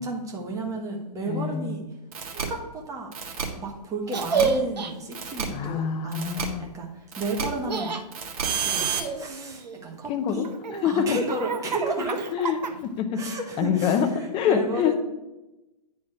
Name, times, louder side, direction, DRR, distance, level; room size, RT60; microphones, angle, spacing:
voice 1, 0.0-1.8 2.2-3.1 3.6-8.0 8.4-10.5 10.8-12.3 13.1-14.9, right 2 dB, 15° right, 0 dB, 1.4 m, -33 dB
voice 2, 1.3-1.7 5.5-6.7 10.1-11.2 12.3-13.2 13.6-14.1 14.3-14.9, left 8 dB, 25° left, 7 dB, 0.7 m, -26 dB
sound 1, 2.1-2.4 3.1-3.4 4.1-4.4 5.1-5.4 6.1-6.4 7.1-7.4 8.1-9.0, right 7 dB, 60° right, 1.6 m, -29 dB
Laughter, 4.1-4.9 7.4-8.0 8.6-9.9 10.4-13.0, right 5 dB, 85° right, 0.8 m, -29 dB
9.5 x 4.3 x 4.7 m, 0.98 s
hypercardioid pair, 125°, 21 cm